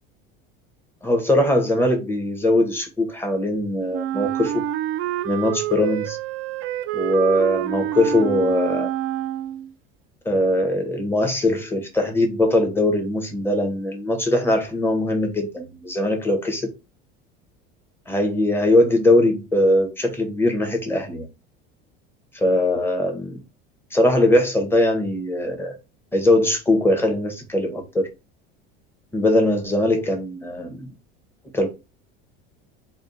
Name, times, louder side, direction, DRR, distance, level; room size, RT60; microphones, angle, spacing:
voice 1, 1.0-4.5 5.2-6.2 6.9-8.9 10.2-16.7 18.1-21.3 22.3-23.4 23.9-25.8 26.1-28.1 29.1-30.9 31.5-31.7, left 1 dB, 10° left, 1.2 m, -21 dB
Wind instrument woodwind instrument, 3.9-9.7, right 12 dB, 45° right, 0.4 m, -27 dB
3.4 x 2.4 x 4.0 m
supercardioid pair, 95°, 29 cm